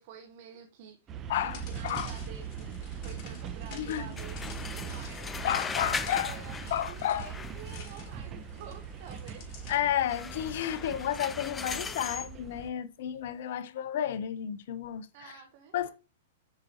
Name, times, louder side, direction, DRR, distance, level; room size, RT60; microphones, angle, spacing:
voice 1, 0.0-9.5 11.1-11.2 15.1-15.9, right 8 dB, 50° right, 1.1 m, -49 dB
sound 1, 1.1-12.7, right 8 dB, 30° right, 0.8 m, -41 dB
voice 2, 1.3-2.1 3.7-4.1 5.4-6.4 6.7-7.3 9.7-15.3 15.7-15.9, left 11 dB, 55° left, 0.7 m, -32 dB
sound 2, 1.5-9.8, left 4 dB, 40° left, 3.1 m, -49 dB
sound 3, 4.2-7.9 10.1-12.3, left 5 dB, 15° left, 0.6 m, -38 dB
9.6 x 4.8 x 3.0 m
figure-of-eight pair, 105°, 0 cm